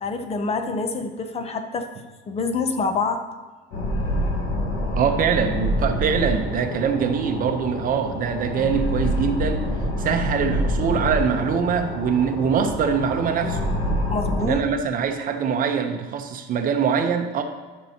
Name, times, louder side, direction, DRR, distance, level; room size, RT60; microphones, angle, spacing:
voice 1, 0.0-1.9 2.3-3.2 14.1-14.6, left 4 dB, 30° left, 7 dB, 0.6 m, -26 dB
sound 1, 3.7-14.5, equal, 80° left, 1.6 m, -26 dB
voice 2, 5.0-9.6 10.0-13.6 14.4-17.4, right 7 dB, 40° right, 7 dB, 0.7 m, -23 dB
12.5 x 5.4 x 2.8 m, 1.3 s
cardioid pair, 135°, 21 cm